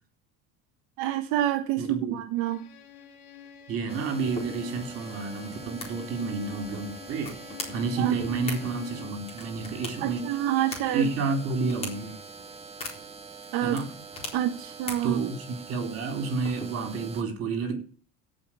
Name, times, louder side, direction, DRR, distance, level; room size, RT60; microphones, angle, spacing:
voice 1, 1.0-2.6 8.0-8.1 10.0-11.1 13.5-13.8 14.3-15.2, right 13 dB, 70° right, 1.3 m, -27 dB
voice 2, 1.8-2.2 3.7-7.4 7.7-10.4 10.9-12.2 13.6-13.9 15.0-17.8, right 4 dB, 45° right, 4.0 m, -30 dB
Bowed string instrument, 2.4-9.3, left 8 dB, 55° left, 2.1 m, -47 dB
sound 1, 3.9-17.2, right 4 dB, 20° right, 1.5 m, -45 dB
sound 2, 4.3-17.1, left 2 dB, 20° left, 3.9 m, -43 dB
17.0 x 6.0 x 7.4 m
cardioid pair, 175°, 33 cm